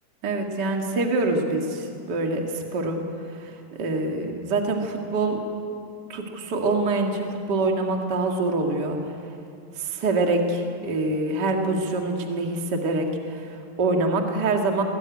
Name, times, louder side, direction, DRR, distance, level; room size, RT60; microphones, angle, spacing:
voice 1, 0.2-3.0 3.3-5.4 6.1-9.1 9.8-14.8, right 2 dB, 90° right, 2 dB, 0.9 m, -25 dB
21.0 x 19.5 x 9.5 m, 2.5 s
omnidirectional pair, 5.4 m